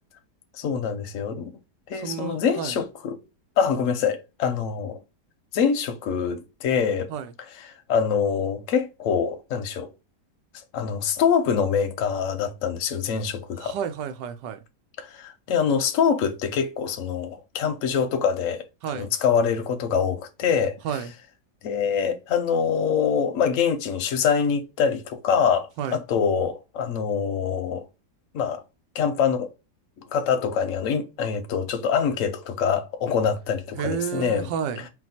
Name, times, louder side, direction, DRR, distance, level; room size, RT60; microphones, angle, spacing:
voice 1, 0.6-1.5 1.9-3.2 3.6-5.0 5.5-7.1 7.7-9.9 10.7-13.7 15.0-18.6 18.9-20.8 21.6-27.8 28.3-28.6 28.9-29.5 30.1-34.5, left 7 dB, 60° left, 0.9 m, -24 dB
voice 2, 1.9-2.8 7.1-7.3 13.6-14.6 18.8-19.1 20.8-21.1 25.8-26.0 33.8-34.9, right 8 dB, 90° right, 1.3 m, -31 dB
4.1 x 2.3 x 4.1 m
omnidirectional pair, 1.8 m